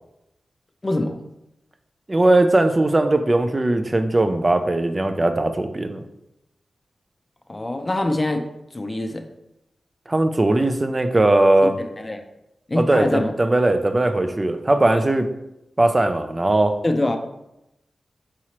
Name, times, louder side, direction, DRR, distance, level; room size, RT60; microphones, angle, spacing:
voice 1, 0.8-1.2 7.5-8.4 8.7-9.2 11.8-12.2 12.7-13.3 16.8-17.2, left 1 dB, 30° left, 6 dB, 0.4 m, -24 dB
voice 2, 2.1-6.1 10.1-11.7 12.8-15.3 15.8-16.8, right 2 dB, 30° right, 7 dB, 0.4 m, -19 dB
4.8 x 2.9 x 2.9 m, 0.88 s
cardioid pair, 55°, 0 cm